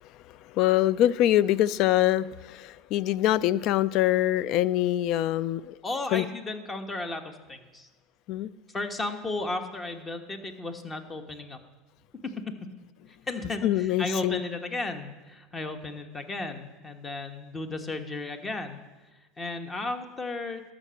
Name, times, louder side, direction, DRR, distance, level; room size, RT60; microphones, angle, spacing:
voice 1, 0.5-5.7 6.1-6.2 8.3-8.5 13.6-14.4, left 13 dB, 60° left, 0.4 m, -24 dB
voice 2, 5.8-7.9 8.7-11.6 13.1-18.8 19.1-20.6, left 2 dB, 25° left, 1.3 m, -34 dB
12.5 x 5.2 x 7.0 m
supercardioid pair, 100°, 0 cm